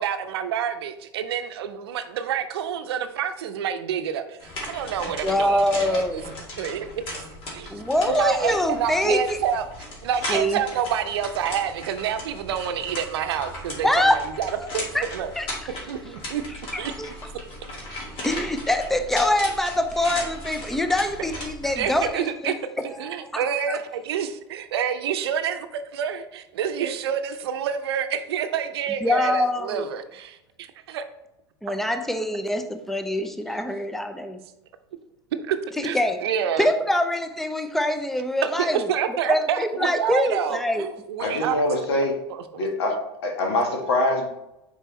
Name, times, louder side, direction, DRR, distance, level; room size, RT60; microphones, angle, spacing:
voice 1, 0.0-6.2 6.6-6.9 7.5-7.7 8.1-9.7 10.0-13.9 14.4-14.8 15.1-15.3 15.9-16.4 16.8-16.9 21.7-22.5 22.8-30.4 30.9-31.0 35.5-35.6 35.8-36.7 38.6-41.6 42.5-42.7, right 8 dB, 75° right, 9 dB, 0.6 m, -28 dB
sound 1, 4.4-22.1, left 1 dB, 40° left, 2.2 m, -37 dB
voice 2, 5.2-6.2 7.7-9.4 10.3-10.6 13.8-14.2 14.6-14.7 14.9-15.1 15.4-15.7 16.7-17.3 18.2-22.6 22.9-23.8 29.0-29.9 31.6-34.4 35.8-36.2 36.6-38.8 39.3-40.9, left 1 dB, ahead, 8 dB, 0.6 m, -24 dB
voice 3, 41.2-42.1 42.6-42.9 43.2-44.3, left 1 dB, 80° left, 1 dB, 1.6 m, -23 dB
6.6 x 4.7 x 3.1 m, 0.87 s
hypercardioid pair, 95°, 13 cm